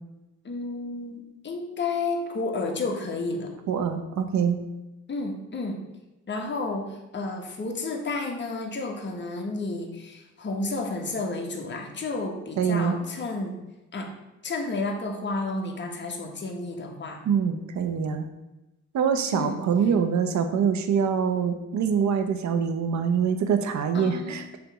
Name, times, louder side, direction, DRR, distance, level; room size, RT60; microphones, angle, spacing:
voice 1, 0.4-3.5 5.1-5.8 6.3-13.6 13.9-14.1 14.4-17.2 19.3-19.6 23.9-24.4, left 3 dB, 35° left, 2 dB, 1.5 m, -31 dB
voice 2, 3.7-4.6 12.6-12.9 17.2-18.3 18.9-24.6, right 7 dB, 65° right, 8 dB, 0.9 m, -24 dB
7.2 x 3.4 x 6.0 m, 1.0 s
cardioid pair, 90°, 30 cm